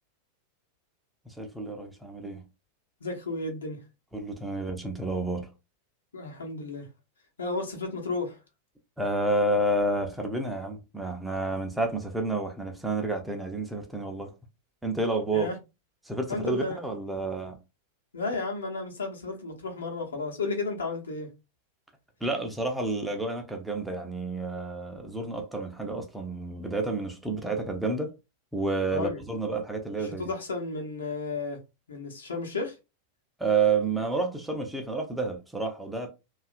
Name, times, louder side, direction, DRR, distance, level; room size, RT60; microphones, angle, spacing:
voice 1, 1.3-2.4 4.1-5.5 9.0-14.3 14.8-15.5 16.0-17.6 22.2-28.1 28.5-30.2 33.4-36.1, right 2 dB, 5° right, 0.6 m, -30 dB
voice 2, 3.0-3.8 6.1-6.9 7.4-8.4 15.3-15.6 16.3-16.8 18.1-21.3 28.9-29.2 30.0-31.6 31.9-32.8, left 3 dB, 70° left, 0.8 m, -33 dB
2.7 x 2.3 x 2.4 m
figure-of-eight pair, 90°, 0 cm